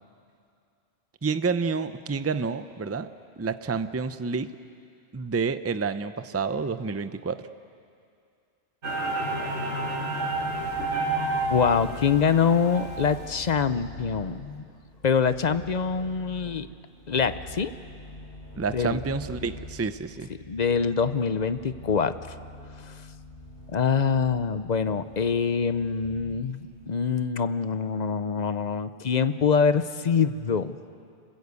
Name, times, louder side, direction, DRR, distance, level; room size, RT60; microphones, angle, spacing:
voice 1, 1.2-3.1 3.4-4.5 5.1-7.5 18.5-20.3, right 5 dB, 20° right, 11 dB, 0.5 m, -29 dB
sound 1, 8.8-13.4, right 2 dB, 75° right, 3.7 m, -30 dB
sound 2, 10.3-26.9, left 1 dB, 70° left, 3.2 m, -45 dB
voice 2, 11.5-14.6 15.0-16.7 17.1-17.7 18.7-19.0 20.5-22.4 22.8-22.9 23.7-30.8, left 6 dB, 45° left, 12 dB, 0.7 m, -25 dB
26.0 x 21.5 x 8.3 m, 2.4 s
omnidirectional pair, 1.2 m